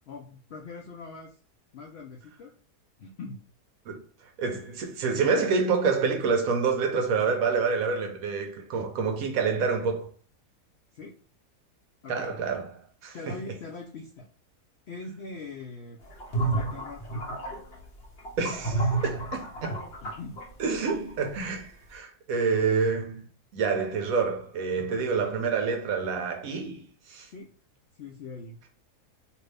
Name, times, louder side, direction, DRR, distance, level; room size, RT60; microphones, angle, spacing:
voice 1, 0.1-1.3 1.7-2.5 3.0-3.4 5.3-5.5 10.9-11.1 12.0-12.3 13.1-14.3 14.9-16.0 16.5-17.1 20.0-20.4 24.7-25.0 27.3-27.5 27.9-28.6, left 3 dB, 75° left, 0.6 m, -42 dB
voice 2, 4.4-10.1 12.1-12.7 13.0-13.4 18.4-19.8 20.6-23.3 23.5-27.3, right 5 dB, 70° right, 0.9 m, -27 dB
sound 1, 16.1-21.4, right 3 dB, 50° left, 1.1 m, -31 dB
2.7 x 2.6 x 3.2 m
omnidirectional pair, 1.7 m